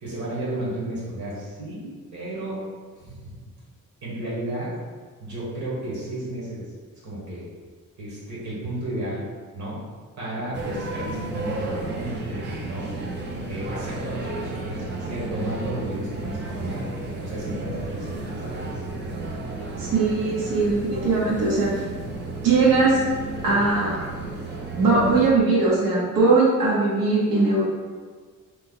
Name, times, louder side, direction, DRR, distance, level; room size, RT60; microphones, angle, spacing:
voice 1, 0.0-2.6 2.9-3.4 4.0-4.7 5.2-6.6 7.0-7.4 8.0-9.2 9.5-9.8 10.2-12.9 13.5-16.8 17.2-18.1 18.4-18.7, right 1 dB, 65° right, -7 dB, 1.2 m, -32 dB
sound 1, 10.5-25.3, right 2 dB, 35° right, 0.4 m, -33 dB
voice 2, 19.8-21.7 22.4-23.0 23.4-24.0 24.8-27.6, right 3 dB, 90° right, -6 dB, 1.0 m, -20 dB
3.2 x 2.1 x 3.6 m, 1.5 s
wide cardioid pair, 170°, 32 cm